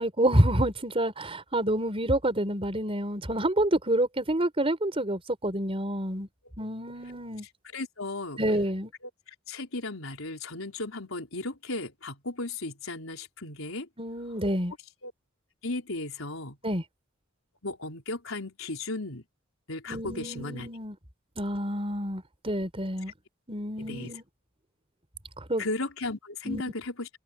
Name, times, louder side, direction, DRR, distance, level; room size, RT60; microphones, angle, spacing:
voice 1, 0.0-6.3 6.6-7.4 8.4-8.9 14.0-14.7 16.6-16.8 19.9-20.9 21.4-23.1 23.5-24.2 25.4-25.6 26.4-26.6, right 1 dB, 30° right, 4.6 m, -28 dB
voice 2, 7.7-8.4 9.3-13.9 15.0-15.1 15.6-16.6 17.6-19.2 19.7-20.7 23.9-24.1 25.6-27.1, left 2 dB, 85° left, 4.2 m, -35 dB
head